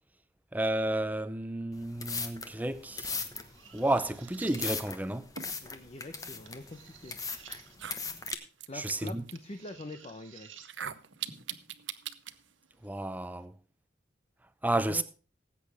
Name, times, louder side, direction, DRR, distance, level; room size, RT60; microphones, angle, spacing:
voice 1, 0.5-3.2 3.7-5.3 8.7-9.2 12.8-13.5 14.6-15.0, right 1 dB, 10° right, 0.7 m, -31 dB
sound 1, 1.7-8.3, left 4 dB, 20° left, 1.2 m, -39 dB
sound 2, 2.5-13.5, right 5 dB, 90° right, 1.8 m, -54 dB
voice 2, 5.6-7.2 8.7-10.5 14.9-15.0, left 2 dB, 35° left, 0.8 m, -44 dB
sound 3, 7.1-7.2 7.7-9.3 10.6-12.3, right 10 dB, 70° right, 0.8 m, -40 dB
19.0 x 8.5 x 3.5 m
head